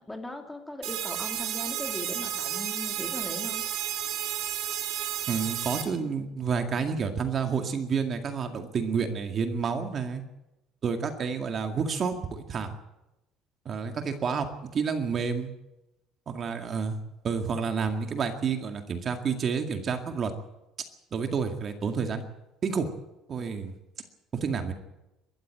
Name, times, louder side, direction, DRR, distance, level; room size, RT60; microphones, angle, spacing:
voice 1, 0.1-3.6, left 1 dB, 5° left, 4 dB, 2.4 m, -38 dB
sound 1, 0.8-5.8, right 11 dB, 60° right, 2.6 m, -32 dB
voice 2, 5.3-10.2 10.8-12.7 13.7-14.5 14.7-15.5 16.3-17.0 17.2-20.3 21.1-22.2 22.6-22.9 23.3-23.7 24.4-24.7, right 6 dB, 30° right, 6 dB, 2.0 m, -29 dB
22.0 x 13.0 x 9.0 m, 0.95 s
cardioid pair, 155°, 0 cm